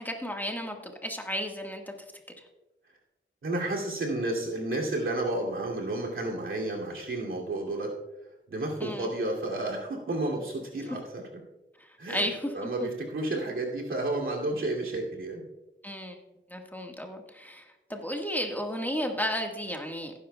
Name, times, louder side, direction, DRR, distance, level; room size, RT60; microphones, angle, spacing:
voice 1, 0.0-1.9 8.8-9.1 11.8-12.9 15.8-16.2 16.5-20.1, equal, 10° left, 2 dB, 1.5 m, -33 dB
voice 2, 3.4-7.9 8.5-11.2 12.0-12.3 12.5-15.4, right 2 dB, 85° right, -2 dB, 2.6 m, -31 dB
17.5 x 10.0 x 2.3 m, 1.0 s
wide cardioid pair, 65°, 20 cm